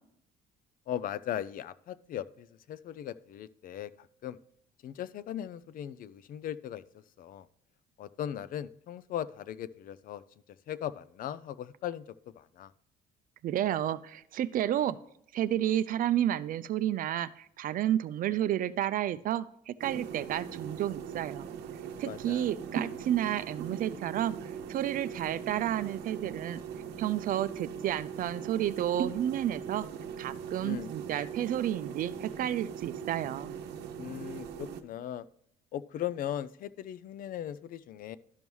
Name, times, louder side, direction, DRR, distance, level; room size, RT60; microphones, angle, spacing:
voice 1, 0.9-3.9 4.2-4.4 4.8-6.8 7.2-7.5 8.0-10.2 10.7-12.7 22.1-22.5 30.6-30.9 34.0-35.2 35.7-38.2, left 10 dB, 55° left, 17 dB, 0.5 m, -38 dB
voice 2, 13.4-15.0 15.3-21.5 22.0-26.6 27.0-29.9 30.2-33.5, right 11 dB, 55° right, 14 dB, 0.4 m, -31 dB
sound 1, 19.8-34.8, right 7 dB, 80° right, 0.8 m, -40 dB
12.5 x 5.4 x 3.1 m, 0.72 s
cardioid pair, 110°, 17 cm